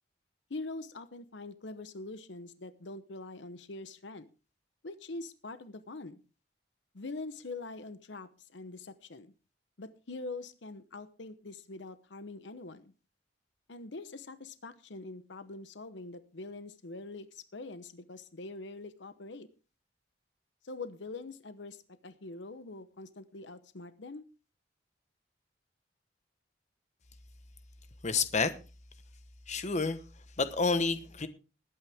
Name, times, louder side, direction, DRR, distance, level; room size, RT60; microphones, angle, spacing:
voice 1, 0.5-4.3 4.8-6.2 6.9-9.3 9.8-12.9 13.7-19.5 20.6-24.2, left 3 dB, 70° left, 0.9 m, -44 dB
voice 2, 28.0-28.5 29.5-30.0 30.4-31.3, left 4 dB, 40° left, 1.1 m, -29 dB
20.5 x 8.8 x 3.5 m
head